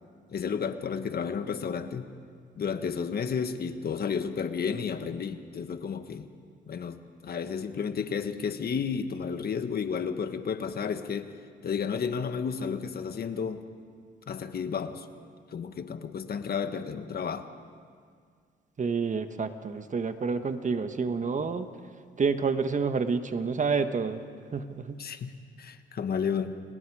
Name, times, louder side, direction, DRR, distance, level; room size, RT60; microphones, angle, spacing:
voice 1, 0.3-2.1 2.5-6.3 6.7-7.0 7.2-11.3 11.6-13.6 14.3-15.1 15.5-17.5 25.0-26.6, left 6 dB, 50° left, 8 dB, 1.6 m, -32 dB
voice 2, 18.8-21.7 22.2-24.2 24.5-25.0, right 5 dB, 40° right, 8 dB, 1.5 m, -28 dB
30.0 x 29.0 x 5.0 m, 2.1 s
cardioid pair, 90°, 20 cm